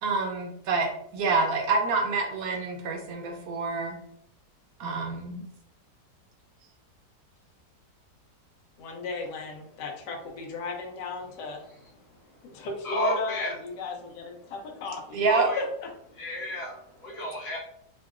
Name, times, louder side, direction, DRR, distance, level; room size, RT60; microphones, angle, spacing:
voice 1, 0.0-3.9 4.8-5.4 15.1-15.5, right 4 dB, 70° right, 2 dB, 0.9 m, -27 dB
voice 2, 8.8-11.6 12.4-15.2 15.6-15.9, left 3 dB, 85° left, 1 dB, 1.3 m, -35 dB
voice 3, 12.8-13.5 15.3-15.6 16.2-17.6, equal, 60° left, -9 dB, 1.3 m, -32 dB
3.7 x 2.2 x 2.3 m, 0.72 s
omnidirectional pair, 1.8 m